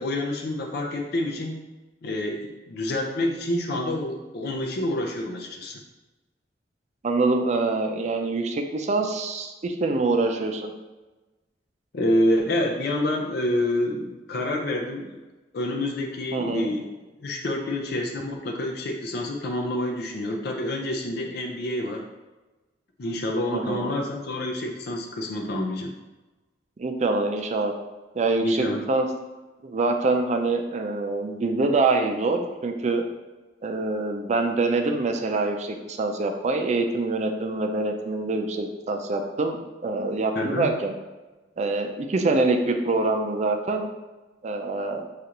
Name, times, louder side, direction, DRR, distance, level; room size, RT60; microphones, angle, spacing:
voice 1, 0.0-1.6 2.0-5.8 11.9-15.2 15.5-16.9 17.2-22.0 23.0-25.9 28.4-28.9 40.4-40.7, left 1 dB, 60° left, 1 dB, 0.5 m, -27 dB
voice 2, 7.0-10.7 16.3-16.7 23.5-23.9 26.8-27.7 28.1-29.1 29.6-33.0 33.6-39.6 39.8-40.9 41.6-43.9 44.4-45.0, right 3 dB, 40° right, 4 dB, 0.4 m, -25 dB
6.4 x 2.4 x 2.9 m, 1.1 s
head